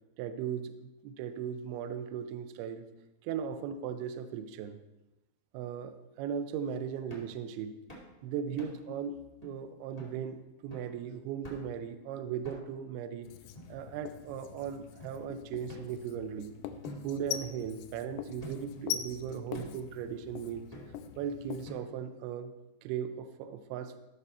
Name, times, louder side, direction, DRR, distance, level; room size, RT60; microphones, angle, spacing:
voice 1, 0.2-2.9 3.2-4.8 5.5-7.8 8.2-9.2 9.4-13.3 13.7-16.5 17.0-20.7 21.2-23.9, right 8 dB, 80° right, 9 dB, 2.3 m, -38 dB
sound 1, 7.1-7.4 7.9-8.1 8.6-8.9 9.4-9.5 10.0-10.2 10.7-11.0 11.4-11.8 12.4-12.9 13.5-14.3 15.0-15.1 15.7-16.4 16.8-17.9 18.4-18.8 19.5-19.9 20.7-21.2 21.6-22.2, equal, 25° left, 0.8 m, -49 dB
Writing, 13.2-21.7, left 11 dB, 85° left, 2.7 m, -43 dB
15.0 x 6.4 x 4.3 m, 0.98 s
omnidirectional pair, 5.3 m